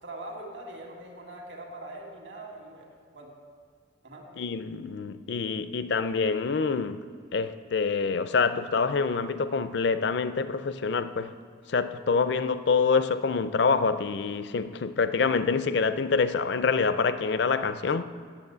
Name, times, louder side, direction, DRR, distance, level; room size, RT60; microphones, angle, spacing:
voice 1, 0.0-3.3 4.0-4.3, right 1 dB, 60° right, 1.9 m, -42 dB
voice 2, 4.4-7.0 7.3-11.3 11.7-18.0, left 5 dB, 55° left, 0.4 m, -26 dB
9.7 x 7.3 x 7.9 m
head